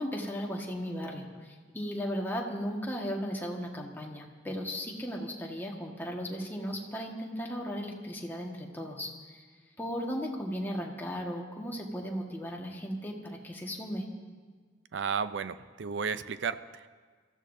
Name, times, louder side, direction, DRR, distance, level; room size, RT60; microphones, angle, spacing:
voice 1, 0.0-9.4 9.8-14.0, equal, 10° left, -1 dB, 1.6 m, -36 dB
voice 2, 14.9-16.9, right 6 dB, 75° right, 13 dB, 0.5 m, -33 dB
25.0 x 14.5 x 2.7 m, 1.5 s
head